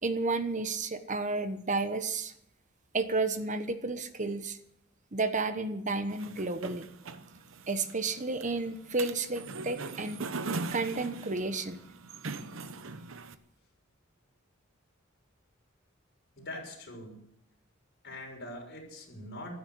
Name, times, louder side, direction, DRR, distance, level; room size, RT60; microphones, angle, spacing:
voice 1, 0.0-2.3 2.9-4.6 5.1-6.9 7.7-10.2 10.7-11.8, right 3 dB, 40° right, 10 dB, 1.1 m, -31 dB
sound 1, 6.1-13.3, right 3 dB, 75° right, 1.0 m, -40 dB
voice 2, 16.4-17.3 18.0-19.6, left 1 dB, 55° left, 0 dB, 6.6 m, -43 dB
15.0 x 13.0 x 6.2 m, 0.75 s
head